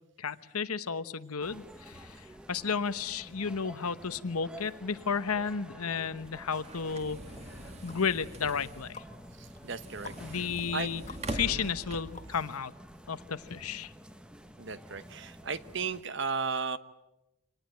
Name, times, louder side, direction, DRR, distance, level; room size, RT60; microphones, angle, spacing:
voice 1, 0.0-7.3 7.8-9.0 10.2-11.0 11.3-12.7 13.1-13.9, left 6 dB, 90° left, 13 dB, 1.0 m, -33 dB
sound 1, 1.4-16.0, equal, 5° right, 0.9 m, -50 dB
sound 2, 5.8-12.4, right 1 dB, 30° right, 2.1 m, -43 dB
sound 3, 7.3-12.7 13.2-13.3, left 4 dB, 30° left, 1.7 m, -52 dB
voice 2, 9.6-10.5 10.7-10.9 11.5-11.7 14.6-16.8, right 5 dB, 55° right, 13 dB, 1.0 m, -35 dB
25.5 x 19.0 x 9.0 m, 0.94 s
head